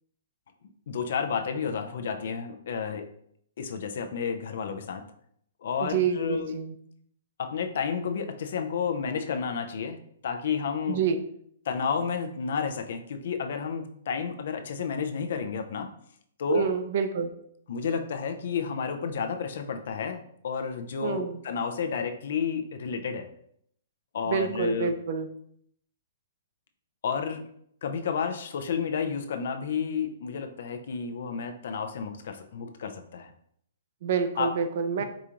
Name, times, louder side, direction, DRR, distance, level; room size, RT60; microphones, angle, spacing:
voice 1, 0.9-3.1 3.6-5.0 5.6-6.5 7.4-10.0 10.2-11.0 11.7-15.9 16.4-16.7 17.7-23.3 24.1-24.9 27.0-27.4 27.8-33.3 34.4-34.5, left 6 dB, 60° left, 7 dB, 0.5 m, -31 dB
voice 2, 5.8-6.7 10.9-11.2 16.5-17.3 21.0-21.4 24.3-25.3 34.0-35.0, right 6 dB, 50° right, 8 dB, 0.4 m, -27 dB
4.9 x 2.4 x 2.9 m, 0.68 s
hypercardioid pair, 165°, 0 cm